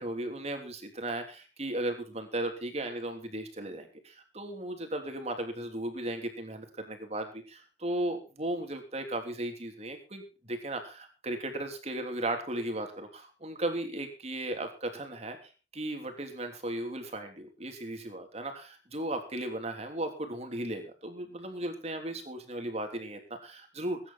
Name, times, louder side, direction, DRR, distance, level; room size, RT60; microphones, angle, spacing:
voice 1, 0.0-15.4 15.7-24.1, right 1 dB, 35° right, 5 dB, 3.2 m, -36 dB
21.0 x 10.0 x 4.3 m, 0.34 s
head